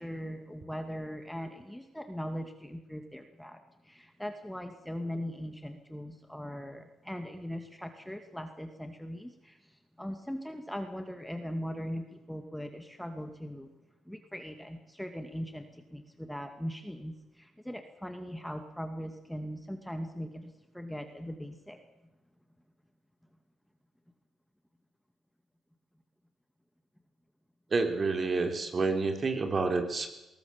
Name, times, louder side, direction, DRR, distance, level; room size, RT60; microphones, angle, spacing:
voice 1, 0.0-13.7 14.1-21.8, equal, 5° left, 6 dB, 2.2 m, -40 dB
voice 2, 27.7-30.1, right 3 dB, 35° right, 6 dB, 3.8 m, -29 dB
21.0 x 18.5 x 7.3 m, 0.98 s
cardioid pair, 90°, 0 cm